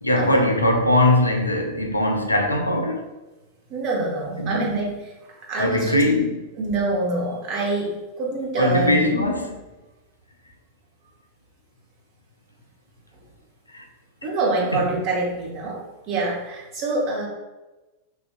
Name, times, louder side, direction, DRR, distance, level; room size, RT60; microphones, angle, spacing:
voice 1, 0.0-3.1 4.4-4.6 5.6-6.3 8.6-9.6 13.7-13.8 14.7-14.9, left 1 dB, 85° left, 0.4 m, -21 dB
voice 2, 3.7-6.0 6.6-9.1 14.2-17.3, right 2 dB, 40° right, 1.1 m, -26 dB
4.8 x 2.5 x 2.4 m
figure-of-eight pair, 90°, 0 cm